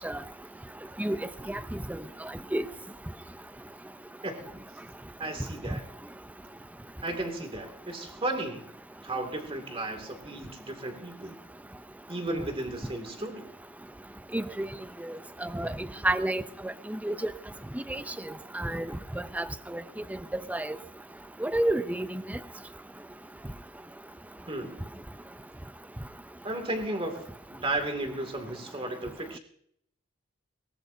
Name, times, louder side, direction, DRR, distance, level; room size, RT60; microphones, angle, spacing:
voice 1, 1.5-2.0 2.5-2.6 14.3-14.7 15.0-15.1 15.4-15.7 16.0-17.3 17.7-18.0 18.5-18.9 19.3-19.8 20.5-20.8 21.4-22.4, right 1 dB, 5° right, 0.5 m, -30 dB
voice 2, 5.2-5.8 7.0-8.6 9.0-11.4 12.1-13.4 24.5-24.8 26.4-27.1 27.5-29.4, right 2 dB, 30° right, 2.4 m, -34 dB
22.0 x 19.0 x 2.7 m
head